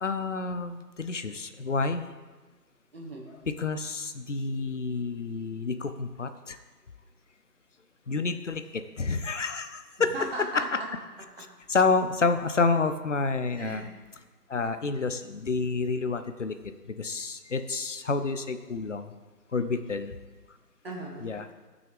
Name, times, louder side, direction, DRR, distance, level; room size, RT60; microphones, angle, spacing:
voice 1, 0.0-2.1 3.6-6.6 8.1-10.1 10.5-10.8 11.7-13.9 14.5-16.6 17.0-19.1 19.5-20.2 21.2-21.5, left 4 dB, 50° left, 9 dB, 0.7 m, -29 dB
voice 2, 2.9-3.3 10.0-10.9 13.6-13.9 20.8-21.3, right 2 dB, 35° right, -1 dB, 1.8 m, -37 dB
16.5 x 6.2 x 3.5 m, 1.3 s
figure-of-eight pair, 160°, 48 cm